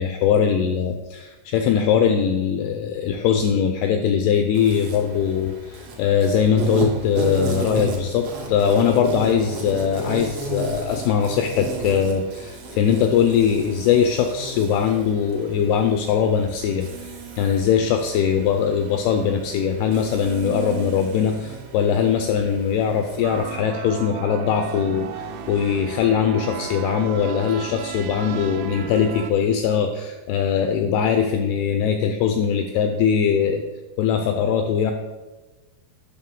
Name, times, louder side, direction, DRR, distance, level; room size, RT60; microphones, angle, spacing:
voice 1, 0.0-33.6 34.0-34.9, left 7 dB, 85° left, 6 dB, 2.3 m, -21 dB
Insect, 4.5-23.5, right 3 dB, 65° right, 2.6 m, -34 dB
sound 1, 23.2-29.3, right 7 dB, 80° right, 2.4 m, -34 dB
8.9 x 5.9 x 3.7 m, 1.2 s
omnidirectional pair, 5.0 m